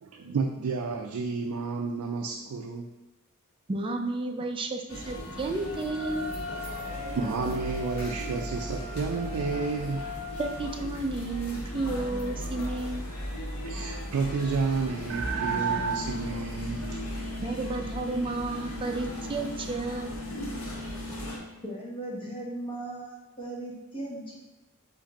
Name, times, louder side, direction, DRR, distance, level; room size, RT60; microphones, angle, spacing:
voice 1, 0.0-2.9 6.9-10.1 13.6-17.2, right 4 dB, 90° right, 2 dB, 0.4 m, -31 dB
voice 2, 3.7-6.3 10.4-13.0 17.4-20.1, right 2 dB, 25° right, 4 dB, 0.4 m, -32 dB
sound 1, 4.9-21.4, equal, 75° left, 1.1 m, -38 dB
Wind instrument woodwind instrument, 5.9-10.6, left 2 dB, 45° left, 0.9 m, -40 dB
sound 2, 15.1-21.5, right 3 dB, 60° right, 0.7 m, -35 dB
voice 3, 21.6-24.3, right 1 dB, 25° left, -5 dB, 1.0 m, -37 dB
4.9 x 2.6 x 4.0 m, 1.1 s
head